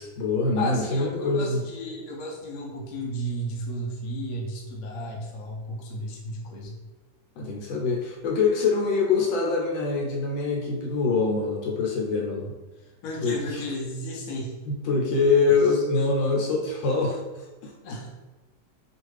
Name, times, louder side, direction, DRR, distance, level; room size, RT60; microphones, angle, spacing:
voice 1, 0.0-1.6 7.4-12.5 13.2-13.7 14.7-17.7, left 4 dB, 85° left, -1 dB, 1.5 m, -24 dB
voice 2, 0.6-6.8 13.0-14.6 15.5-15.6 17.8-18.1, equal, 65° left, -1 dB, 0.9 m, -33 dB
3.2 x 2.4 x 3.1 m, 1.1 s
omnidirectional pair, 2.1 m